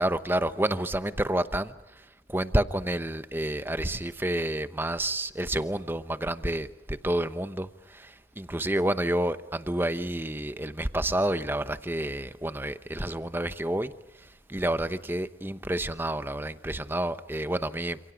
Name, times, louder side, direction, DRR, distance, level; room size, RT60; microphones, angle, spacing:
voice 1, 0.0-1.7 2.3-18.0, right 1 dB, 10° right, 0.9 m, -29 dB
29.5 x 27.5 x 5.2 m
head